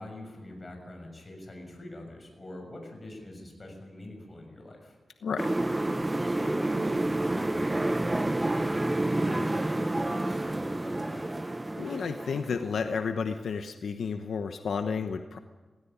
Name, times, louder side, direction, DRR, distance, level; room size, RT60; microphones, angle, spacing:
voice 1, 0.0-5.0 6.2-8.9 9.1-11.3, left 1 dB, 30° left, 3 dB, 6.6 m, -44 dB
sound 1, 5.4-13.0, right 2 dB, 20° right, 0.7 m, -29 dB
voice 2, 11.8-15.4, left 5 dB, 85° left, 7 dB, 1.0 m, -31 dB
17.5 x 17.0 x 10.0 m, 1.3 s
wide cardioid pair, 105°, 0 cm